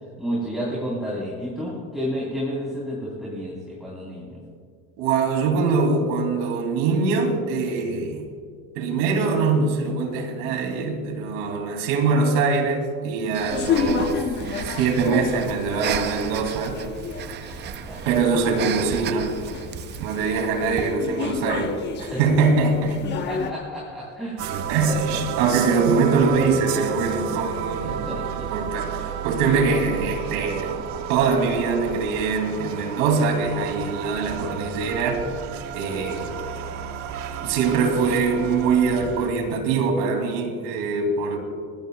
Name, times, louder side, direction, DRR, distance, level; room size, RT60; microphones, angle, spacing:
voice 1, 0.2-4.4 17.8-18.2 22.1-22.2 23.3-24.4 24.7-25.2 27.8-28.5, equal, ahead, -7 dB, 3.8 m, -31 dB
voice 2, 5.0-8.3 8.8-14.3 14.6-16.8 18.0-19.4 20.0-23.0 24.7-25.0 25.4-28.0 28.5-30.8 31.1-35.3 35.7-36.3 37.4-41.4, right 4 dB, 85° right, 4 dB, 2.8 m, -23 dB
Breathing, 13.3-21.0, right 10 dB, 35° right, 0.5 m, -34 dB
sound 1, 13.5-23.5, left 6 dB, 35° left, 1.1 m, -31 dB
sound 2, 24.4-39.3, right 8 dB, 60° right, 1.3 m, -31 dB
22.0 x 18.5 x 2.3 m, 2.1 s
cardioid pair, 150°, 32 cm